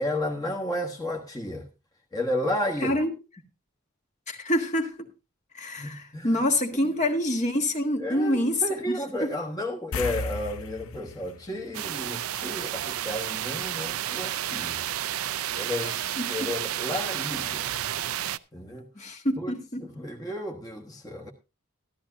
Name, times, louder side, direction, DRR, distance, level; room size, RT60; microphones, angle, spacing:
voice 1, 0.0-1.7 2.1-3.0 5.8-6.5 6.7-6.9 8.0-14.8 15.5-16.0 16.3-17.7 18.5-18.9 19.4-21.3, left 1 dB, 15° left, 1.3 m, -32 dB
voice 2, 4.3-4.9 5.5-5.9 6.2-8.6 8.9-9.3 16.2-16.3 19.0-19.8, left 1 dB, 35° left, 1.5 m, -26 dB
sound 1, 9.9-12.7 13.0-13.2 16.1-16.2 16.5-16.6, left 4 dB, 80° left, 0.7 m, -36 dB
sound 2, 11.7-18.4, right 11 dB, 80° right, 0.5 m, -31 dB
13.5 x 13.5 x 2.6 m
head